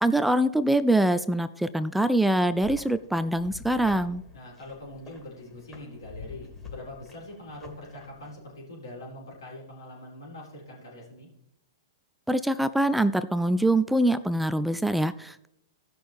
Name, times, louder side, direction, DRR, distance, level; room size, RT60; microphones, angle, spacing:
voice 1, 0.0-4.2 12.3-15.5, right 1 dB, 5° right, 13 dB, 0.3 m, -24 dB
sound 1, 2.2-8.3, left 5 dB, 15° left, 2.4 m, -47 dB
voice 2, 4.3-11.3, left 1 dB, 80° left, -4 dB, 4.2 m, -43 dB
15.5 x 6.0 x 3.5 m, 0.79 s
hypercardioid pair, 115°, 2 cm